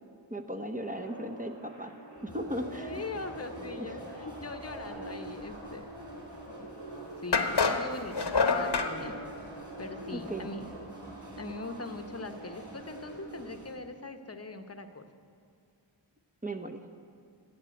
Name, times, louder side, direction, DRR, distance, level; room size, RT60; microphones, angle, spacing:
voice 1, 0.3-1.9 2.2-3.0 3.8-4.0 10.1-10.5 16.4-16.9, equal, 15° right, 6 dB, 0.8 m, -37 dB
sound 1, 0.8-13.4, right 1 dB, 75° right, 3.8 m, -45 dB
sound 2, 2.1-13.7, right 1 dB, 40° right, 3.8 m, -51 dB
voice 2, 2.8-5.9 6.6-6.7 7.2-9.3 9.8-10.7 11.4-15.1, left 3 dB, 30° left, 8 dB, 0.9 m, -41 dB
sound 3, 6.5-6.6 7.3-8.9, left 4 dB, 55° left, 1.0 m, -26 dB
12.0 x 7.4 x 9.2 m, 2.2 s
wide cardioid pair, 45°, 48 cm